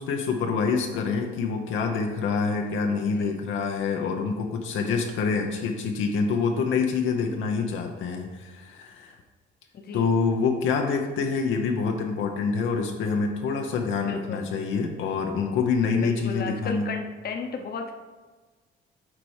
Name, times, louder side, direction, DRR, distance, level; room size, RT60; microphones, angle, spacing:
voice 1, 0.0-9.2 9.9-16.9, left 5 dB, 80° left, 3 dB, 0.8 m, -26 dB
voice 2, 9.7-10.1 14.1-14.5 16.0-17.9, left 4 dB, 50° left, 4 dB, 0.9 m, -34 dB
7.4 x 4.2 x 4.8 m, 1.3 s
cardioid pair, 90°, 20 cm